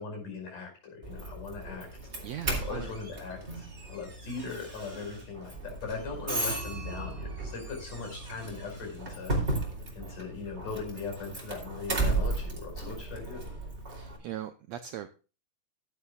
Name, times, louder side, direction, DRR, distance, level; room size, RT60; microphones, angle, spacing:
voice 1, 0.0-1.9 2.5-9.3 9.9-13.4, left 4 dB, 65° left, 2 dB, 6.7 m, -40 dB
Doorbell, 1.0-14.2, right 2 dB, 20° right, 2.9 m, -35 dB
voice 2, 2.2-2.9 13.9-15.1, right 11 dB, 85° right, 10 dB, 1.5 m, -39 dB
14.5 x 11.5 x 2.3 m, 0.34 s
omnidirectional pair, 3.9 m